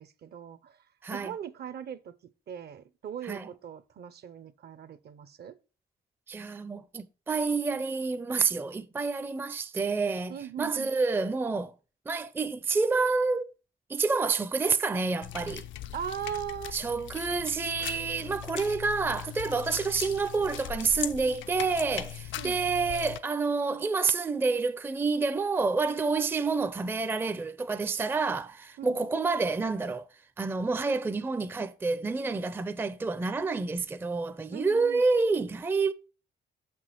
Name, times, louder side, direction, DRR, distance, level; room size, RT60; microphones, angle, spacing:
voice 1, 0.0-0.8 1.1-2.1 2.5-5.6 10.3-10.9 15.9-16.8 22.3-22.6 28.8-29.0 34.5-35.0, right 9 dB, 55° right, 0.6 m, -39 dB
voice 2, 1.0-1.3 3.2-3.5 6.3-11.7 12.1-13.5 13.9-15.6 16.7-30.1 30.4-35.9, right 4 dB, 10° right, 0.4 m, -28 dB
sound 1, 15.2-23.2, left 11 dB, 75° left, 0.4 m, -40 dB
6.1 x 6.0 x 3.0 m
cardioid pair, 90°, 20 cm